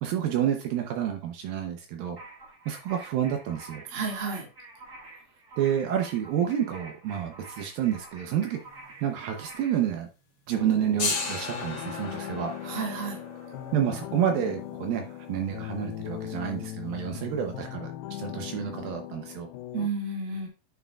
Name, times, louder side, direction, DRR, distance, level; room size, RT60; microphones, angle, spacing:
voice 1, 0.0-2.2 2.7-3.8 5.6-8.6 9.0-10.1 10.5-12.6 13.7-19.5, right 9 dB, 75° right, 5 dB, 2.2 m, -29 dB
sound 1, 2.2-9.8, right 2 dB, 20° right, 1.9 m, -48 dB
voice 2, 3.9-4.5 12.6-13.2 19.7-20.5, right 4 dB, 45° right, -2 dB, 1.8 m, -31 dB
sound 2, 8.4-9.2 9.5-9.6 10.4-17.1, left 4 dB, 60° left, 1.1 m, -37 dB
sound 3, 10.5-19.9, left 14 dB, 85° left, 2.2 m, -39 dB
9.1 x 6.3 x 2.3 m, 0.30 s
omnidirectional pair, 4.9 m